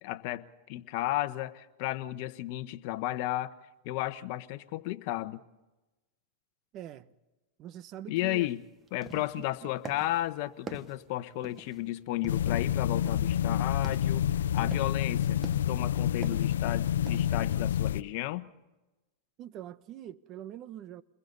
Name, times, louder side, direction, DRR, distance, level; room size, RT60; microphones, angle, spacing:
voice 1, 0.0-3.5 3.8-5.4 8.1-8.6 8.9-14.2 14.5-15.4 15.7-18.5, left 16 dB, 55° left, 1.2 m, -33 dB
voice 2, 6.7-7.1 7.6-8.5 9.2-9.4 19.4-21.0, right 11 dB, 40° right, 1.1 m, -44 dB
sound 1, 8.4-8.6 8.9-9.5 9.9-10.3 10.7-11.8 12.2-12.6 13.1-13.4 13.7-14.2 14.6-15.0 15.4-15.9 16.2-16.6 17.1-17.3, right 5 dB, 20° right, 1.5 m, -45 dB
sound 2, 12.3-18.0, left 10 dB, 90° left, 0.6 m, -28 dB
29.5 x 21.5 x 4.1 m
supercardioid pair, 130°, 0 cm